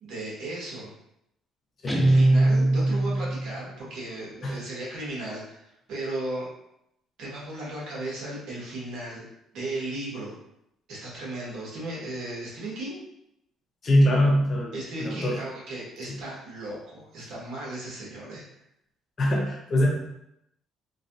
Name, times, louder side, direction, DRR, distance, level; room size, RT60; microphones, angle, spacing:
voice 1, 0.0-0.9 1.9-6.5 7.2-9.3 9.5-10.3 10.9-13.0 14.7-18.4, right 1 dB, 70° right, -5 dB, 1.4 m, -36 dB
Guitar, 1.9-3.6, right 1 dB, 5° left, 0.4 m, -21 dB
voice 2, 13.8-15.4 16.1-16.2 19.2-19.9, left 1 dB, 40° left, -1 dB, 0.8 m, -23 dB
3.1 x 2.8 x 2.6 m, 0.79 s
cardioid pair, 105°, 0 cm